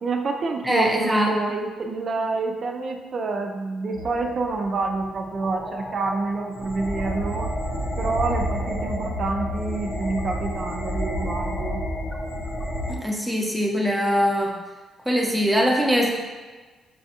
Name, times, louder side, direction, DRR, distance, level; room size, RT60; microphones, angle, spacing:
voice 1, 0.0-7.5 8.0-11.8, right 3 dB, 45° right, 4 dB, 0.5 m, -27 dB
voice 2, 0.6-1.6 12.9-14.6 15.1-16.1, equal, 5° right, 0 dB, 0.7 m, -22 dB
sound 1, 3.9-13.0, equal, 35° left, 0.7 m, -30 dB
6.0 x 2.3 x 2.8 m, 1.3 s
cardioid pair, 90°, 0 cm